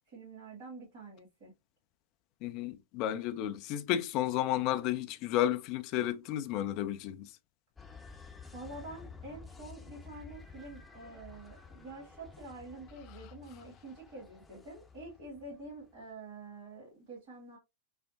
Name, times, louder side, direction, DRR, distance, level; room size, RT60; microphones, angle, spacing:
voice 1, 0.1-1.5 8.5-17.6, right 2 dB, 45° right, 2.1 m, -47 dB
voice 2, 2.4-7.3, left 12 dB, 40° left, 0.5 m, -32 dB
sound 1, 7.8-16.0, left 5 dB, 10° left, 0.8 m, -52 dB
5.6 x 2.1 x 2.6 m
figure-of-eight pair, 90°, 0 cm